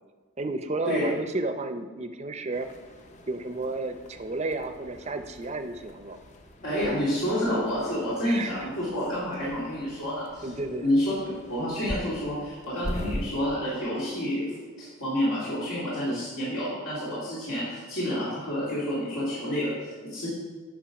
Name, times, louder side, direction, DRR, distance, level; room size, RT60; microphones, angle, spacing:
voice 1, 0.4-2.7 3.3-6.2 8.2-8.7 10.4-10.8 16.1-16.3, right 2 dB, 30° right, 8 dB, 0.5 m, -32 dB
sound 1, 2.5-13.2, left 1 dB, 35° left, 0.6 m, -42 dB
voice 2, 6.6-10.5 10.8-11.2 11.5-20.3, equal, 80° left, -9 dB, 2.5 m, -29 dB
8.8 x 5.3 x 5.1 m, 1.4 s
head